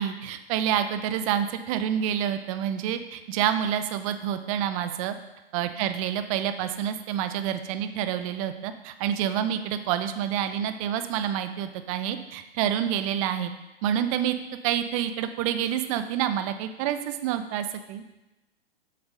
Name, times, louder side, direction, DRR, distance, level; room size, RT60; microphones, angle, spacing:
voice 1, 0.0-5.1 5.5-13.5 13.8-14.4 14.6-18.0, right 10 dB, 35° right, 10 dB, 0.8 m, -28 dB
8.3 x 6.7 x 5.4 m, 1.0 s
hypercardioid pair, 120°, 31 cm